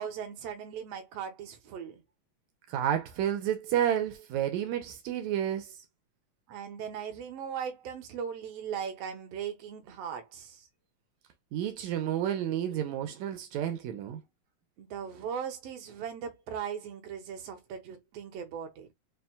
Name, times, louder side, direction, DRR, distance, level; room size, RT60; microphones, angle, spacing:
voice 1, 0.0-2.0 6.5-10.7 14.8-18.9, right 8 dB, 65° right, 1.9 m, -38 dB
voice 2, 2.7-5.7 11.5-14.2, right 10 dB, 85° right, 2.0 m, -30 dB
5.7 x 2.7 x 2.2 m
omnidirectional pair, 3.3 m